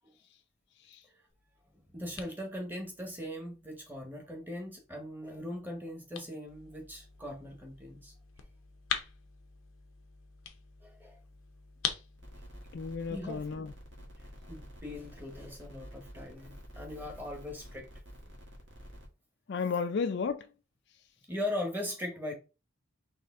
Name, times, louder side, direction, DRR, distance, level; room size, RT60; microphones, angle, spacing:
sound 1, 1.3-14.8, left 8 dB, 85° left, 0.7 m, -44 dB
voice 1, 1.7-8.1 10.8-11.2 13.1-13.4 14.5-17.9 21.3-22.3, left 1 dB, 10° right, 1.1 m, -40 dB
sound 2, 12.2-19.1, equal, 60° right, 1.4 m, -50 dB
voice 2, 12.7-13.7 19.5-20.5, left 5 dB, 55° left, 0.4 m, -33 dB
4.2 x 3.1 x 3.6 m
head